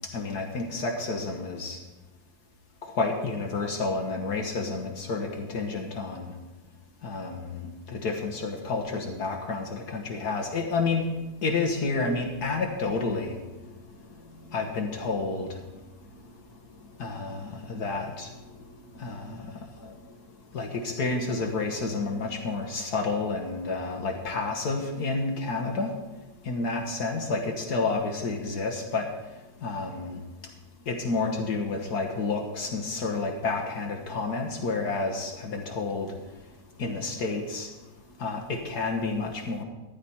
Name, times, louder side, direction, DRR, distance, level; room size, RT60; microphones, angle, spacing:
voice 1, 0.1-1.8 2.8-6.3 7.0-11.1 11.4-13.4 14.5-15.5 17.0-18.3 19.0-19.4 19.8-19.9 20.5-25.9 26.5-29.1 29.6-30.2 30.9-36.1 36.8-37.7 38.2-39.6, left 3 dB, 55° left, 2 dB, 1.7 m, -30 dB
14.0 x 10.5 x 4.3 m, 1.1 s
omnidirectional pair, 2.1 m